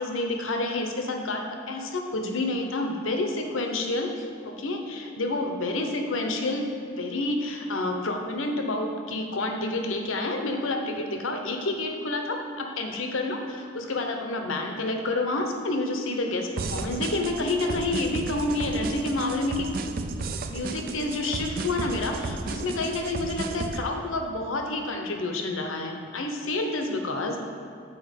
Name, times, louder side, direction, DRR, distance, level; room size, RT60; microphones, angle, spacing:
voice 1, 0.0-6.7 7.0-19.7 20.5-27.4, left 2 dB, 75° left, 4 dB, 0.8 m, -29 dB
sound 1, 16.6-23.8, right 3 dB, 45° right, 0.3 m, -33 dB
8.6 x 4.4 x 5.1 m, 2.5 s
head